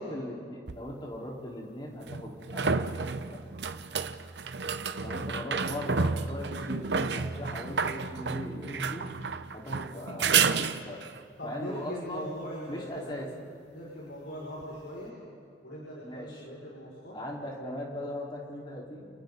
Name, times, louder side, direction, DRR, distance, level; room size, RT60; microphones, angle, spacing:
voice 1, 0.0-3.4 5.0-9.1 9.5-11.0 11.4-12.3 12.7-13.3 16.0-16.5 17.1-19.1, left 1 dB, 25° left, -3 dB, 4.3 m, -39 dB
sound 1, 0.7-0.8 2.1-11.2 14.6-14.7, right 5 dB, 75° right, 0.8 m, -30 dB
voice 2, 11.4-13.2 13.7-15.1 15.6-17.2, left 1 dB, 85° left, -5 dB, 5.9 m, -40 dB
29.5 x 29.0 x 4.0 m, 2.2 s
head